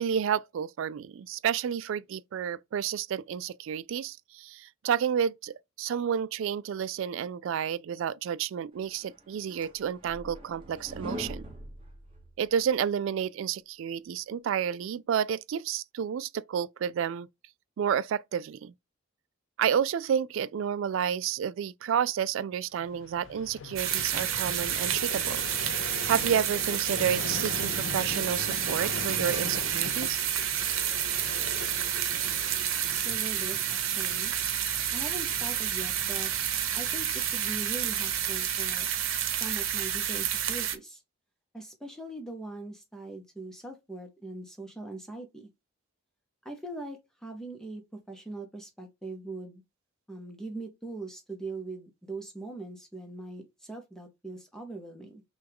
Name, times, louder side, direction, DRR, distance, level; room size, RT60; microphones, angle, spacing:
voice 1, 0.0-11.4 12.4-17.3 17.8-18.7 19.6-25.4 25.8-30.2, right 8 dB, 70° right, 0.3 m, -30 dB
sound 1, 9.0-12.7, equal, 25° right, 1.3 m, -42 dB
Vehicle, 22.8-39.1, left 4 dB, 65° left, 0.4 m, -42 dB
sound 2, 23.8-40.8, right 10 dB, 85° right, 0.8 m, -30 dB
voice 2, 32.4-34.3 34.9-36.3 36.7-38.9 39.3-41.0 41.5-45.5 46.4-49.6 50.1-55.2, right 2 dB, 5° left, 0.7 m, -41 dB
6.1 x 2.3 x 3.5 m
head